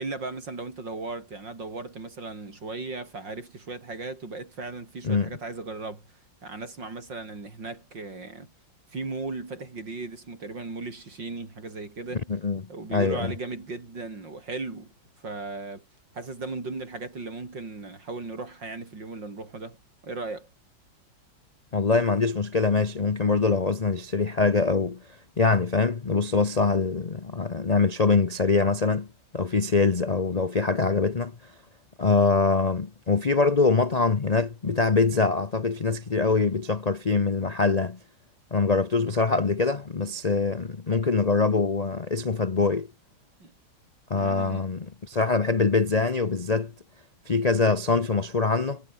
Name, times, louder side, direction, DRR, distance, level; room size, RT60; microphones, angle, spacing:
voice 1, 0.0-8.5 8.9-12.3 12.7-15.8 16.1-20.5 43.4-43.5 44.2-44.7, right 3 dB, 65° right, 5.1 m, -37 dB
voice 2, 12.3-12.6 12.9-13.3 21.7-25.0 25.4-29.1 29.3-31.3 32.0-38.0 38.5-42.9 44.1-46.7 47.3-48.8, left 4 dB, 75° left, 0.3 m, -24 dB
omnidirectional pair, 2.2 m